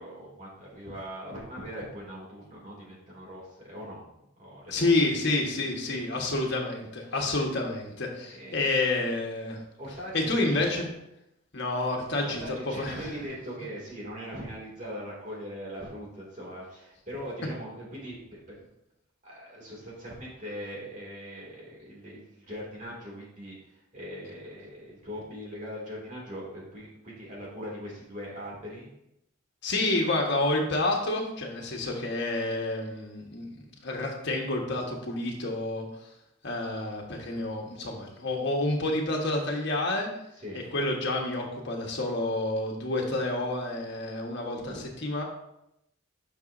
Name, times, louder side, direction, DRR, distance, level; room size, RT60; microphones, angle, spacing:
voice 1, 0.0-4.0 4.4-5.1 5.9-6.1 8.2-8.7 9.8-10.8 12.2-18.7 19.2-28.9 40.4-40.6 44.6-44.8, equal, 35° right, -4 dB, 2.5 m, -40 dB
voice 2, 4.7-9.6 10.1-10.9 11.5-12.4 12.8-12.9 29.6-36.1 36.4-40.1 40.5-45.2, left 2 dB, 55° left, 0 dB, 1.4 m, -29 dB
9.1 x 6.0 x 2.7 m, 0.82 s
head